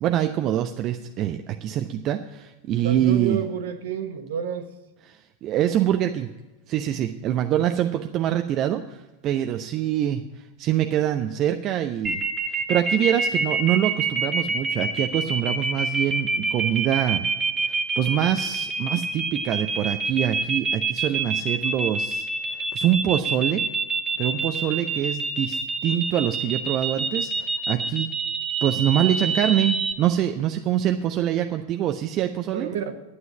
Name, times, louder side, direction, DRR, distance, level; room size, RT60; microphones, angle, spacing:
voice 1, 0.0-3.4 5.1-6.3 6.7-10.2 10.6-12.2 12.5-17.2 17.6-23.7 24.2-28.1 28.6-32.7, right 11 dB, 35° right, 6 dB, 0.6 m, -25 dB
voice 2, 2.8-4.7 32.5-32.9, right 8 dB, 55° right, 8 dB, 1.3 m, -29 dB
sound 1, 12.0-29.9, right 4 dB, 20° right, 1.3 m, -26 dB
11.5 x 9.4 x 5.6 m, 1.1 s
figure-of-eight pair, 90°, 0 cm